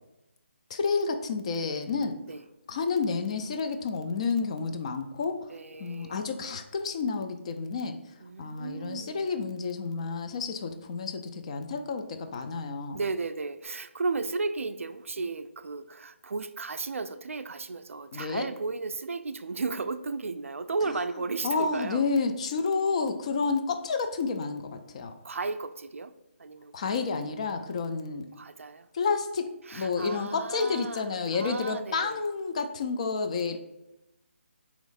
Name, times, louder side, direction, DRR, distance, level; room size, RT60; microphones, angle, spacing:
voice 1, 0.7-2.2 2.7-5.5 5.8-8.0 8.4-13.0 18.1-18.5 21.4-25.1 26.7-28.3 28.9-33.6, left 4 dB, 30° left, 7 dB, 0.3 m, -30 dB
voice 2, 5.5-6.2 8.2-9.3 12.9-22.1 25.2-26.1 26.4-26.7 28.3-28.9 29.7-32.2, right 4 dB, 80° right, 11 dB, 0.4 m, -34 dB
4.1 x 2.9 x 3.9 m, 0.93 s
figure-of-eight pair, 160°, 7 cm